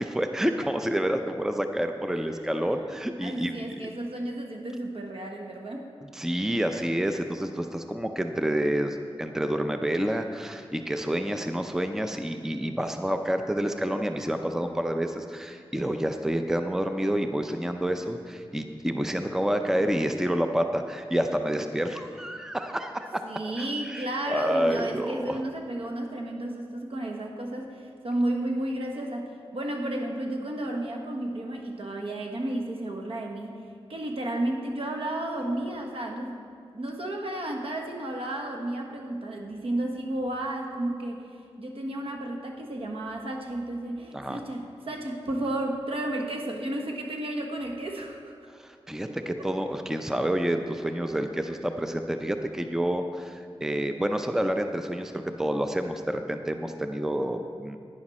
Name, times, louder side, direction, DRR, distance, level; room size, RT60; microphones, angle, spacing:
voice 1, 0.0-3.9 6.0-23.2 23.6-25.4 44.1-44.4 48.6-57.8, equal, 5° right, 6 dB, 0.5 m, -28 dB
voice 2, 3.2-5.9 23.2-33.6 33.9-36.4 36.7-41.2 41.6-48.3 49.1-49.2, right 1 dB, 70° right, 2 dB, 1.3 m, -32 dB
11.0 x 9.9 x 4.2 m, 2.3 s
wide cardioid pair, 75°, 10 cm